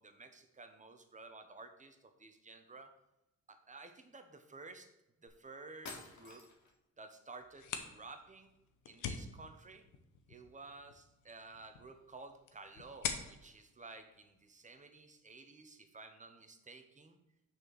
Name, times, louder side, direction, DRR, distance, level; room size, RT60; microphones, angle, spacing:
voice 1, 0.0-2.9 3.5-4.9 5.2-6.5 7.0-8.5 8.9-9.9 10.3-17.2, right 3 dB, 25° right, 7 dB, 1.1 m, -53 dB
sound 1, 5.3-5.4 5.8-6.8, left 3 dB, 70° left, 2.0 m, -50 dB
sound 2, 7.4-14.9, left 7 dB, 85° left, 1.0 m, -46 dB
6.3 x 4.6 x 6.5 m, 0.92 s
cardioid pair, 90°, 30 cm